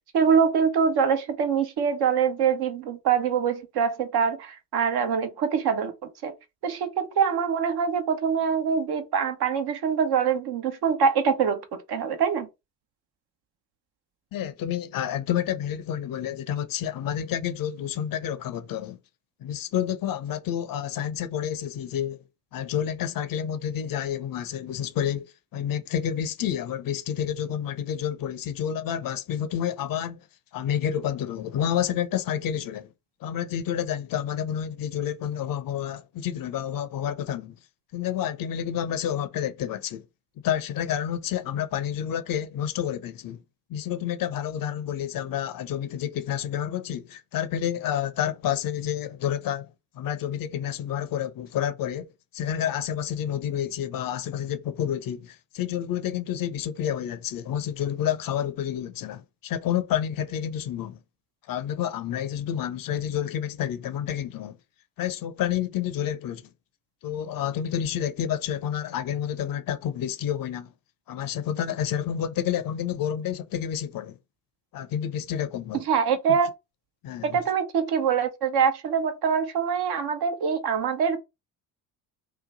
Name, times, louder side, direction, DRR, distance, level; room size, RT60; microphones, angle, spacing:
voice 1, 0.1-5.9 6.2-6.3 6.6-12.5 75.7-76.5 77.2-81.2, right 6 dB, 60° right, 0.9 m, -24 dB
voice 2, 14.3-19.0 19.4-22.2 22.5-25.3 25.5-30.2 30.5-32.9 33.2-37.5 37.9-40.0 40.4-43.4 43.7-52.1 52.3-61.0 61.5-64.6 65.0-66.5 67.0-70.7 71.1-74.2 74.7-75.8 76.3-76.4 77.0-77.4, left 10 dB, 50° left, 0.6 m, -29 dB
2.9 x 2.2 x 3.9 m
hypercardioid pair, 55°, 45 cm